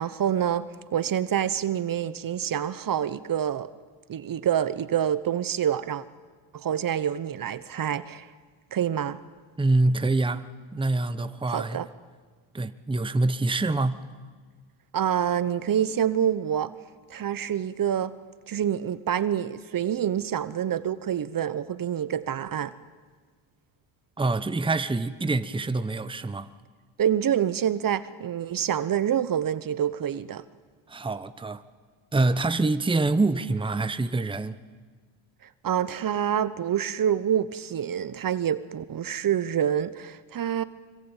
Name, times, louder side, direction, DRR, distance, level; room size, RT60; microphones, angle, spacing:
voice 1, 0.0-3.7 4.1-6.0 6.5-8.3 8.7-9.2 11.5-11.9 14.9-16.7 17.1-18.2 18.5-22.7 27.0-30.4 35.6-40.6, right 9 dB, 45° right, 1.1 m, -27 dB
voice 2, 9.6-11.8 12.5-14.0 24.2-26.5 30.9-31.6 32.1-34.6, right 2 dB, 10° right, 1.1 m, -25 dB
25.0 x 24.0 x 9.1 m
supercardioid pair, 85°, 48 cm